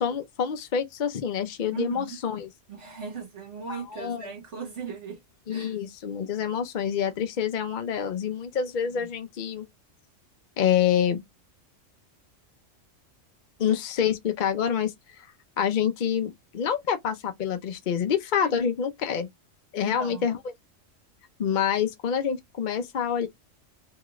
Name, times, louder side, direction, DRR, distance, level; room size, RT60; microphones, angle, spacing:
voice 1, 0.0-2.5 3.7-4.3 5.5-9.7 10.6-11.2 13.6-15.3 15.6-19.3 19.7-20.4 21.4-23.3, left 8 dB, 55° left, 0.5 m, -27 dB
voice 2, 1.7-2.2 2.7-5.2 5.5-5.8 18.4-18.6 19.8-20.3, right 6 dB, 65° right, 1.3 m, -38 dB
2.9 x 2.4 x 3.0 m
omnidirectional pair, 1.4 m